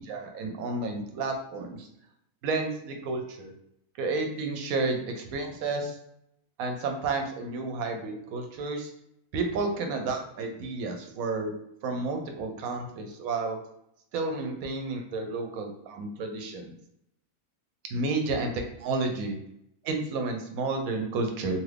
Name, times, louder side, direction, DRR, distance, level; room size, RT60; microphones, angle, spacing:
voice 1, 0.0-1.9 2.4-3.5 4.0-6.0 6.6-8.9 9.3-11.5 11.8-13.6 14.1-16.7 17.9-18.5 18.8-19.4 19.8-21.6, right 3 dB, 85° right, 4 dB, 1.1 m, -31 dB
2.8 x 2.5 x 3.3 m, 0.75 s
omnidirectional pair, 1.4 m